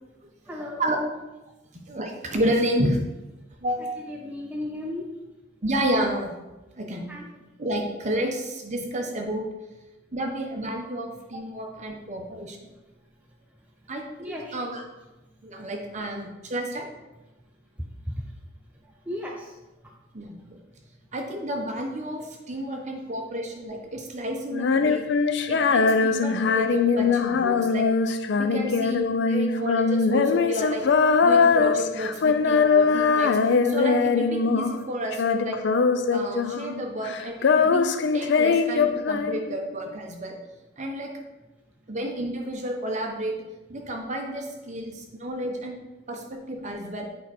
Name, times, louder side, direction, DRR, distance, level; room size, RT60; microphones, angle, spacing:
voice 1, 0.5-0.9 4.1-5.0 7.1-7.3 14.2-14.7 19.1-19.5, left 1 dB, 5° right, -2 dB, 0.6 m, -35 dB
voice 2, 1.7-3.0 3.6-3.9 5.6-6.3 6.8-7.1 7.6-9.4 10.1-12.6 13.9-14.8 15.4-16.9 20.1-20.6 21.1-25.0 25.5-27.9 28.3-30.8 31.2-33.3 33.6-35.6 36.1-37.8 38.1-40.3 40.8-41.1 41.9-43.3 43.7-45.8 46.1-47.1, right 1 dB, 35° right, 1 dB, 1.1 m, -30 dB
Female singing, 24.5-34.8 35.1-36.8 37.1-39.7, left 5 dB, 60° left, 0.4 m, -22 dB
8.0 x 4.7 x 4.2 m, 1.1 s
head